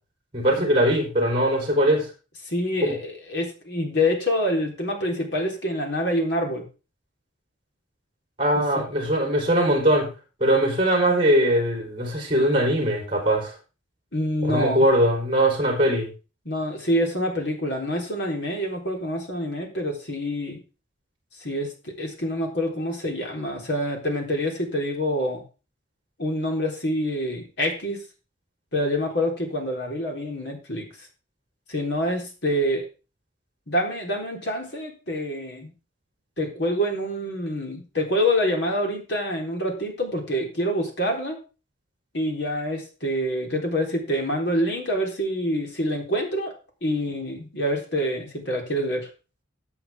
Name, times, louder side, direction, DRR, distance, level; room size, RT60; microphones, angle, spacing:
voice 1, 0.3-2.1 2.8-3.0 8.4-10.1 10.4-13.5 14.4-16.1, right 1 dB, 30° right, 1 dB, 4.1 m, -21 dB
voice 2, 2.5-6.6 8.6-8.8 14.1-14.8 16.5-20.6 21.4-25.4 26.2-28.0 28.7-31.1 31.7-32.9 33.7-35.7 36.4-41.4 42.1-46.5 46.8-49.1, equal, 60° left, 1 dB, 3.8 m, -26 dB
14.5 x 7.8 x 3.6 m, 0.32 s
head